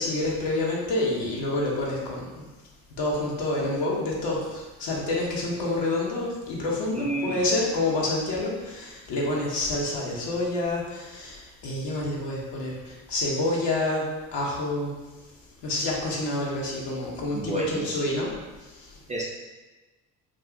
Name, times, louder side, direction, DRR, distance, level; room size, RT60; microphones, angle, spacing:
voice 1, 0.0-2.5 3.0-15.0 15.6-18.3 18.6-19.0, left 2 dB, 60° left, -3 dB, 1.1 m, -28 dB
voice 2, 6.9-7.5 17.3-18.0 19.1-19.2, right 2 dB, 15° right, -3 dB, 0.4 m, -31 dB
2.7 x 2.4 x 3.6 m, 1.2 s
hypercardioid pair, 50°, 46 cm